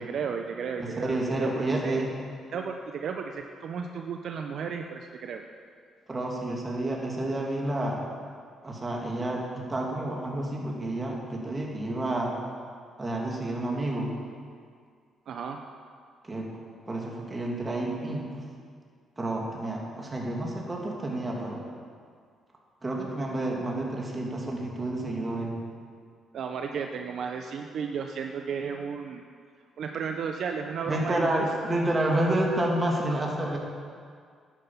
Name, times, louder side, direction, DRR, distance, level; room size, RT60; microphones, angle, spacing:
voice 1, 0.0-2.0 2.5-5.4 15.3-15.6 26.3-29.2 29.8-31.5, right 6 dB, 65° right, 4 dB, 0.7 m, -34 dB
voice 2, 0.8-2.1 6.1-8.0 8.6-12.3 13.0-14.1 16.2-16.5 16.9-18.3 19.2-21.6 22.8-25.5 30.9-33.6, right 1 dB, 25° right, -1 dB, 2.5 m, -29 dB
11.5 x 9.7 x 5.7 m, 2.1 s
cardioid pair, 90°, 0 cm